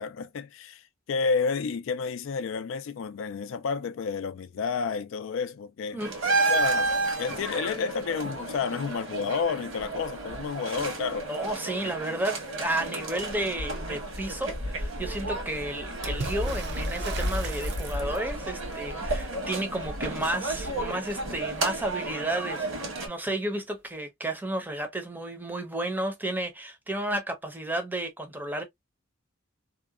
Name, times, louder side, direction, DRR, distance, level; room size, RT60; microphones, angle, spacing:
voice 1, 0.0-6.0 6.5-6.9 7.2-11.3 11.8-11.9, left 5 dB, 70° left, 0.3 m, -30 dB
sound 1, 6.0-23.1, right 2 dB, 75° right, 1.3 m, -32 dB
voice 2, 11.3-28.6, right 1 dB, 10° right, 0.6 m, -32 dB
Water / Splash splatter, 16.0-18.4 21.7-21.8 22.1-22.8 23.9-24.0, right 5 dB, 55° right, 0.6 m, -39 dB
2.8 x 2.2 x 2.3 m
head